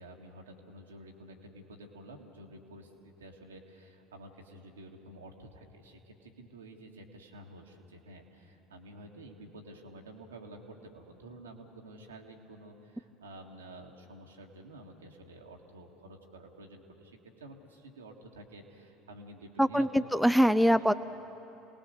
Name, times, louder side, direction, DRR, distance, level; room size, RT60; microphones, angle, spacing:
voice 1, 0.0-20.2 20.7-20.9, right 1 dB, 80° right, 1 dB, 1.9 m, -50 dB
voice 2, 19.6-20.9, equal, ahead, 11 dB, 0.5 m, -23 dB
27.5 x 19.0 x 6.6 m, 2.9 s
figure-of-eight pair, 70°, 0 cm